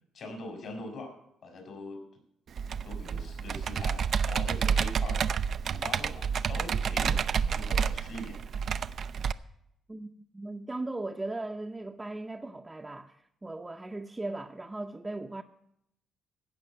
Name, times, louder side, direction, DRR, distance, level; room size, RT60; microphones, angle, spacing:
voice 1, 0.1-1.1 1.4-2.0 2.8-8.4, left 2 dB, 65° left, 4.3 m, -42 dB
Computer keyboard, 2.6-9.3, right 7 dB, 55° right, 0.4 m, -29 dB
voice 2, 9.9-15.4, right 2 dB, 15° right, 0.7 m, -38 dB
15.5 x 5.4 x 7.8 m
cardioid pair, 90°, 0 cm